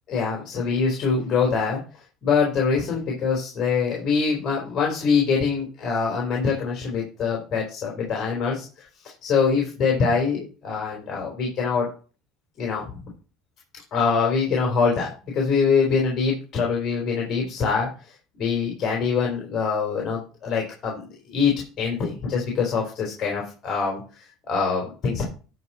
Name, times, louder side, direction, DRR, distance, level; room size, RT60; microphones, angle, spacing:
voice 1, 0.1-1.8 2.2-11.9 12.6-13.0 13.9-17.9 18.4-21.0 21.3-24.0 24.5-25.2, left 5 dB, 45° left, -1 dB, 3.8 m, -24 dB
12.5 x 4.2 x 5.6 m, 0.36 s
supercardioid pair, 90°, 0 cm